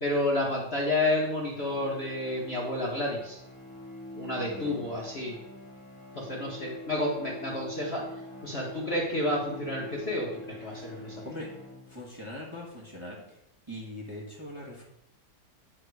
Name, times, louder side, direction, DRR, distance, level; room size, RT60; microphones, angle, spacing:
voice 1, 0.0-3.4 4.1-5.4 6.1-8.0 8.4-11.2, left 1 dB, 40° left, -4 dB, 1.2 m, -30 dB
sound 1, 1.5-12.3, left 1 dB, 20° left, 0.9 m, -45 dB
voice 2, 10.6-11.5 11.8-13.4 13.7-14.8, left 1 dB, 15° right, -4 dB, 1.3 m, -42 dB
8.9 x 3.7 x 4.7 m, 0.80 s
omnidirectional pair, 2.1 m